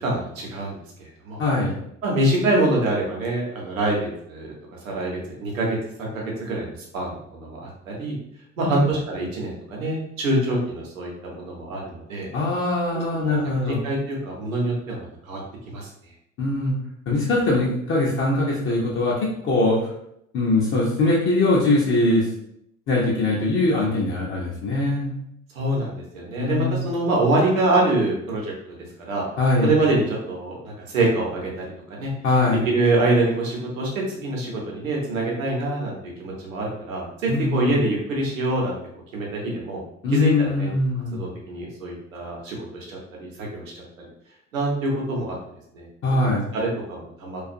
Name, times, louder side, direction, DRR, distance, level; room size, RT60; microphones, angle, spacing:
voice 1, 0.0-1.4 2.0-4.0 4.3-4.5 4.8-6.7 6.9-8.1 8.6-12.3 12.9-15.4 15.7-15.9 25.5-28.8 29.1-29.2 29.6-32.1 32.6-38.7 39.1-39.8 40.1-40.7 41.1-43.8 44.5-45.4 45.7-45.8 46.5-47.4, right 2 dB, 75° right, -2 dB, 0.8 m, -25 dB
voice 2, 1.4-1.8 8.6-8.8 12.3-13.8 16.4-16.7 17.1-19.8 20.3-22.3 22.9-25.1 26.4-26.8 29.4-29.7 32.2-32.6 37.3-37.7 40.0-41.2 46.0-46.4, left 2 dB, 30° left, -5 dB, 0.6 m, -22 dB
2.4 x 2.4 x 2.5 m, 0.75 s
figure-of-eight pair, 60°, 41 cm